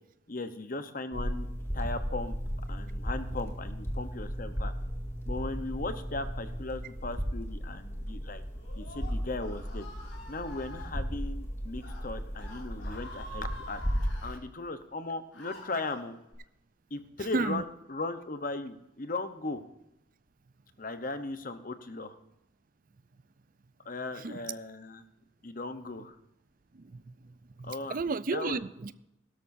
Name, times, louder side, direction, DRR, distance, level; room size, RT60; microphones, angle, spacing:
voice 1, 0.3-1.5 1.7-2.4 2.7-4.7 5.3-8.4 8.7-9.9 10.3-13.8 14.2-16.1 16.9-19.6 20.8-22.2 23.8-25.0 25.4-26.2 27.6-28.0 28.3-28.6, left 2 dB, 45° left, 9 dB, 0.9 m, -37 dB
sound 1, 1.1-14.3, equal, 15° left, 1.8 m, -35 dB
Screaming, 8.5-10.9 11.7-12.0 12.3-14.4 15.0-16.3, left 1 dB, 75° left, 4.4 m, -48 dB
voice 2, 17.3-17.6 24.2-24.4 26.7-28.9, right 3 dB, 45° right, 15 dB, 0.5 m, -33 dB
16.5 x 13.0 x 2.7 m, 0.86 s
head